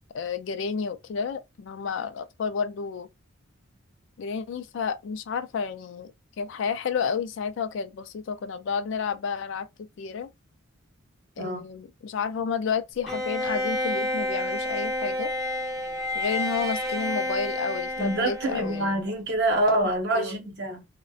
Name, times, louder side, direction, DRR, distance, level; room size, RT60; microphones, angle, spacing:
voice 1, 0.1-3.1 4.2-6.1 6.4-10.3 11.4-15.3 16.1-18.9 20.1-20.4, left 6 dB, 55° left, 0.3 m, -31 dB
Bowed string instrument, 13.1-19.1, left 1 dB, ahead, 0.8 m, -30 dB
voice 2, 18.0-20.8, right 1 dB, 50° right, 0.8 m, -26 dB
2.6 x 2.1 x 2.3 m
head